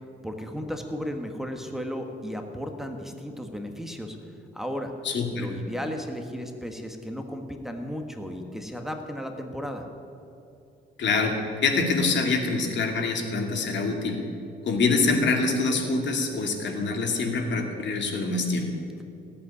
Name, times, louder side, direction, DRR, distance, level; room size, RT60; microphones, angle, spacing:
voice 1, 0.2-4.2 4.5-4.9 5.4-9.9, equal, ahead, 4 dB, 1.6 m, -34 dB
voice 2, 5.0-5.5 11.0-14.2 14.6-18.7, left 3 dB, 65° left, 3 dB, 2.5 m, -25 dB
17.0 x 8.5 x 9.8 m, 2.7 s
cardioid pair, 90°, 20 cm